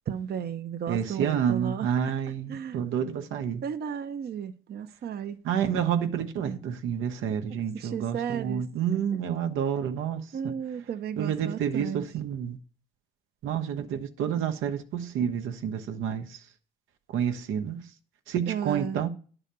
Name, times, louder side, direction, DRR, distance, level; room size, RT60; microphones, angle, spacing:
voice 1, 0.1-2.1 2.5-2.8 3.6-5.4 7.5-8.7 10.3-12.2 18.5-19.1, right 8 dB, 55° right, 0.7 m, -34 dB
voice 2, 0.9-3.6 5.4-10.5 11.2-12.6 13.4-16.4 17.1-17.8 18.3-19.1, right 8 dB, 85° right, 1.0 m, -29 dB
10.5 x 4.0 x 6.7 m
cardioid pair, 90°, 20 cm